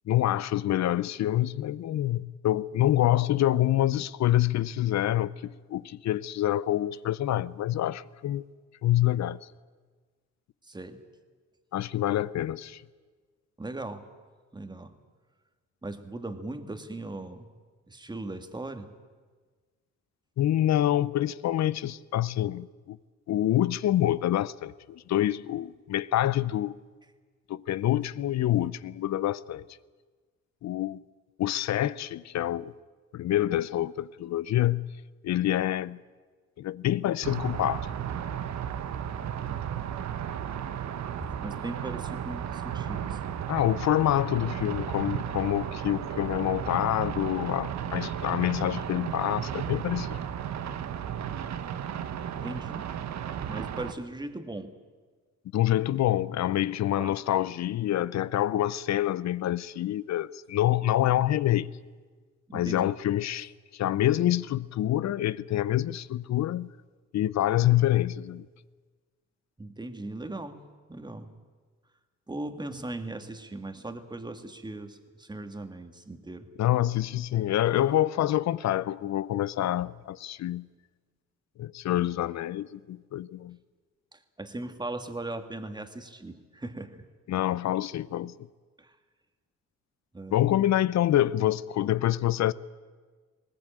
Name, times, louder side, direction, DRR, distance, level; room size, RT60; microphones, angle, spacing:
voice 1, 0.1-8.4 8.8-9.5 11.7-12.8 20.4-23.0 23.3-26.7 27.5-29.6 30.6-31.0 31.4-32.7 33.1-34.9 35.2-36.0 36.6-37.9 43.5-50.2 55.5-61.7 62.5-66.7 67.1-68.5 76.6-80.7 81.6-83.6 87.3-88.3 90.3-92.5, left 13 dB, 65° left, 0.7 m, -26 dB
voice 2, 10.6-11.0 13.6-14.0 14.5-14.9 15.8-17.5 17.9-18.9 41.2-43.4 52.4-52.9 53.5-54.7 57.0-57.2 62.5-62.9 69.6-70.6 70.9-71.3 72.3-76.5 84.1-87.1 88.8-89.0 90.1-90.5, right 2 dB, 15° right, 1.9 m, -38 dB
sound 1, 37.2-53.9, right 9 dB, 65° right, 1.2 m, -34 dB
19.5 x 19.0 x 9.0 m
cardioid pair, 90°, 30 cm